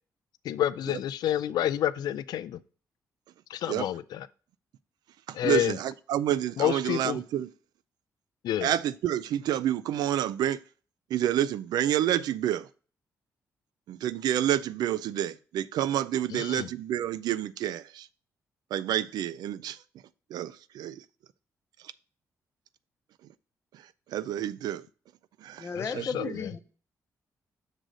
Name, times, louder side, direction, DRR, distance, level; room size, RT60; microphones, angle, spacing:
voice 1, 0.4-2.6 3.5-4.3 5.3-5.8 6.6-7.2 8.4-8.7 16.3-16.7 25.7-26.5, left 11 dB, 80° left, 0.3 m, -29 dB
voice 2, 5.3-7.5 8.6-10.6 11.1-12.7 13.9-18.1 18.7-19.8 20.3-21.0 24.1-24.8 25.4-26.4, right 11 dB, 85° right, 0.3 m, -29 dB
voice 3, 25.6-26.6, left 5 dB, 40° left, 0.8 m, -34 dB
6.4 x 3.9 x 6.3 m
cardioid pair, 110°, 7 cm